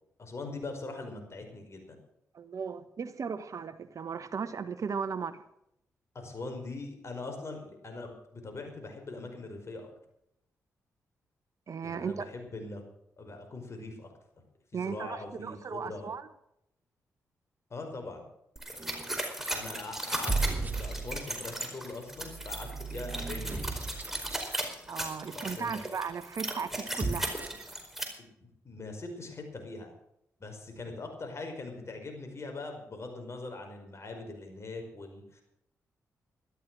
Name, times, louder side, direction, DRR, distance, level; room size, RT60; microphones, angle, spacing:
voice 1, 0.2-2.0 6.1-9.9 11.8-12.8 13.2-14.1 14.7-16.1 17.7-18.2 19.5-23.7 25.3-25.8 28.2-29.9 30.4-35.4, left 3 dB, 45° left, 4 dB, 5.3 m, -42 dB
voice 2, 2.3-5.4 11.7-12.3 14.7-16.3 18.8-19.1 24.9-27.3, right 6 dB, 55° right, 12 dB, 1.2 m, -36 dB
sound 1, 18.6-28.0, right 1 dB, 5° right, 4.7 m, -37 dB
sound 2, 18.8-19.2 20.0-21.4 22.1-24.5 26.8-27.8, right 3 dB, 25° right, 2.6 m, -35 dB
13.5 x 12.5 x 6.3 m, 0.77 s
supercardioid pair, 45°, 6 cm